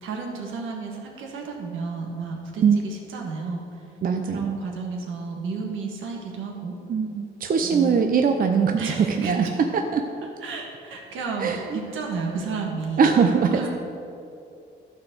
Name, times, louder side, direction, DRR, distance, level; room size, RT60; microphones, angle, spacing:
voice 1, 0.0-3.6 4.3-6.7 7.6-8.1 8.8-9.3 10.4-13.1 13.5-13.7, right 4 dB, 80° right, 0 dB, 1.6 m, -32 dB
voice 2, 4.0-4.6 6.9-10.0 11.4-11.8 13.0-13.7, right 6 dB, 45° right, 4 dB, 0.6 m, -21 dB
11.5 x 4.2 x 6.6 m, 2.6 s
cardioid pair, 90°, 20 cm